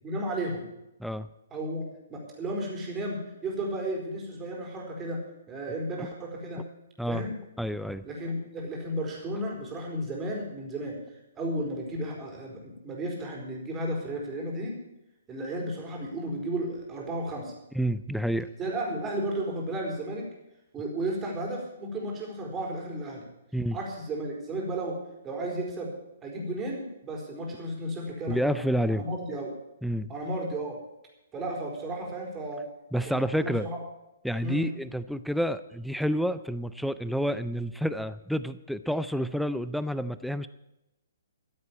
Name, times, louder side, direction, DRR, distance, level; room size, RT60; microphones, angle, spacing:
voice 1, 0.0-0.7 1.5-1.8 2.1-5.2 5.5-6.6 7.1-7.4 8.0-11.0 11.3-14.8 15.3-17.5 18.6-20.3 20.7-23.3 23.7-25.0 25.2-25.9 26.2-28.6 28.9-29.5 30.1-30.8 31.3-32.6 32.9-33.8 34.4-34.7, right 1 dB, 15° right, -1 dB, 4.5 m, -33 dB
voice 2, 7.6-8.0 17.7-18.5 23.5-23.8 28.3-29.0 29.8-30.1 32.9-33.7 34.2-40.5, equal, ahead, 13 dB, 0.5 m, -29 dB
14.5 x 8.1 x 8.7 m, 0.91 s
figure-of-eight pair, 125°, 0 cm